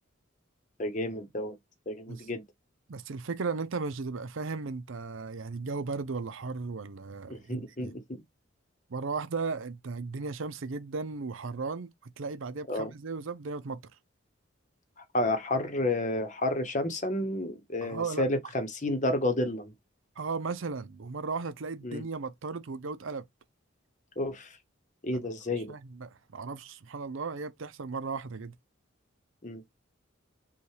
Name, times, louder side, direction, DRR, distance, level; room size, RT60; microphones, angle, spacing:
voice 1, 0.8-1.6 1.9-2.4 7.3-8.2 12.7-12.9 15.0-19.7 21.8-22.0 24.2-24.6 25.0-25.7 29.4-29.6, left 1 dB, 35° left, 0.9 m, -31 dB
voice 2, 2.9-7.9 8.9-11.9 12.2-13.8 17.8-18.2 20.2-23.2 25.1-25.2 25.7-28.5, right 4 dB, 75° right, 0.6 m, -36 dB
5.6 x 2.4 x 3.2 m
head